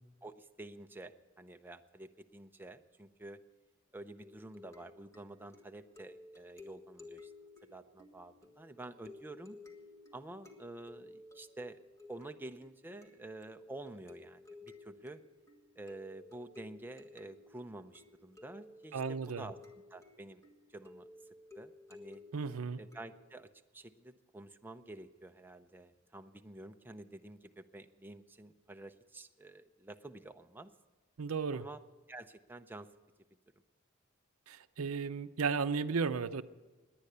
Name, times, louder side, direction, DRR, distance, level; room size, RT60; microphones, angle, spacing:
voice 1, 0.2-3.4 3.9-7.3 7.6-9.6 10.1-11.8 12.1-15.2 15.8-19.6 19.9-20.4 20.7-21.1 21.5-22.2 22.8-23.5 23.7-30.7 31.5-31.8 32.1-32.9, right 2 dB, 10° right, 7 dB, 0.5 m, -49 dB
sound 1, 4.2-23.4, left 2 dB, 15° left, 1.5 m, -56 dB
voice 2, 18.9-19.4 22.3-22.8 31.2-31.7 34.5-36.4, right 5 dB, 90° right, 13 dB, 0.6 m, -34 dB
18.0 x 10.5 x 6.7 m, 1.3 s
head